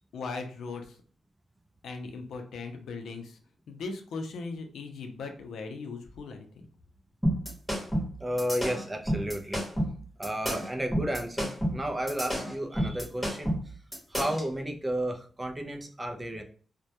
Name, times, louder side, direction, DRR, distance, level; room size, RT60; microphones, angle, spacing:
voice 1, 0.1-0.8 1.8-3.4 3.7-6.7, left 4 dB, 90° left, 5 dB, 0.5 m, -38 dB
sound 1, 7.2-14.5, equal, 5° left, 0.9 m, -30 dB
voice 2, 8.2-9.6 10.2-13.7 14.1-16.4, right 1 dB, 15° right, 3 dB, 0.4 m, -32 dB
2.1 x 2.1 x 2.8 m, 0.42 s
wide cardioid pair, 140°, 0 cm